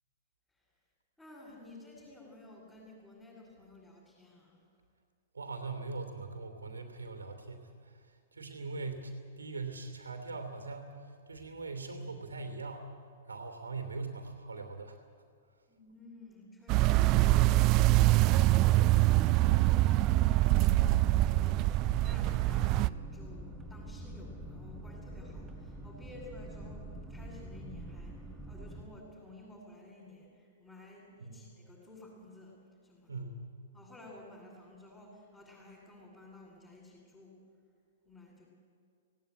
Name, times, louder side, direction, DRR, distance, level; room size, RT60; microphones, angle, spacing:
voice 1, 1.2-4.6 15.7-28.2 28.5-33.2 33.7-37.4 38.0-38.4, left 2 dB, 5° left, -10 dB, 7.3 m, -53 dB
voice 2, 5.3-8.0 8.3-11.0 11.3-12.8 13.3-15.0 31.2-31.4 33.1-33.5, right 3 dB, 80° right, 7 dB, 3.0 m, -41 dB
sound 1, 16.7-22.9, right 17 dB, 35° right, 0.4 m, -24 dB
sound 2, 19.8-28.8, right 1 dB, 10° right, 3.9 m, -45 dB
18.0 x 18.0 x 9.4 m, 2.3 s
figure-of-eight pair, 110°, 0 cm